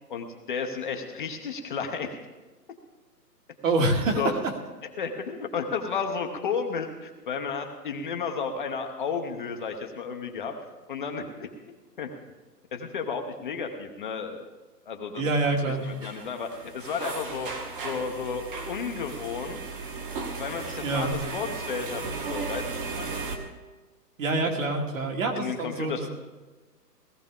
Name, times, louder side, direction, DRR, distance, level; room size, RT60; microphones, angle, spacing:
voice 1, 0.1-2.1 4.2-4.3 5.0-10.5 10.9-12.1 12.7-14.4 14.9-15.2 16.0-17.5 17.8-19.6 20.4-23.2 25.4-26.1, left 5 dB, 30° left, 3 dB, 0.9 m, -33 dB
voice 2, 3.6-4.5 15.2-15.8 20.8-21.2 24.2-26.1, right 2 dB, 50° right, 2 dB, 2.3 m, -26 dB
sound 1, 15.8-23.4, right 4 dB, 30° right, 1.5 m, -35 dB
17.5 x 14.5 x 3.7 m, 1.2 s
hypercardioid pair, 160°, 49 cm